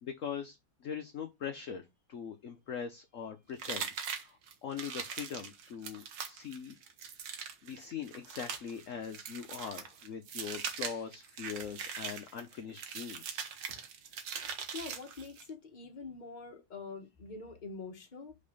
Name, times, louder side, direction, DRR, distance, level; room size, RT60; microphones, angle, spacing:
voice 1, 0.0-6.8 7.6-13.5, left 7 dB, 55° left, 0.9 m, -42 dB
sound 1, 3.6-15.5, right 7 dB, 65° right, 1.7 m, -41 dB
voice 2, 14.7-18.4, left 4 dB, 25° left, 1.2 m, -45 dB
5.3 x 4.7 x 5.3 m
omnidirectional pair, 2.2 m